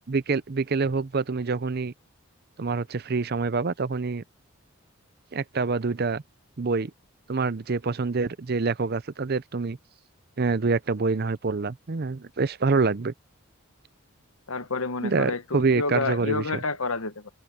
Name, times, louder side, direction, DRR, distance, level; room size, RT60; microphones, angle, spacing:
voice 1, 0.1-1.9 2.6-4.2 5.3-6.2 6.6-6.9 7.3-9.8 10.4-13.1 15.0-16.4, right 4 dB, 45° right, 0.6 m, -26 dB
voice 2, 14.5-17.3, left 3 dB, 80° left, 1.3 m, -29 dB
open air
head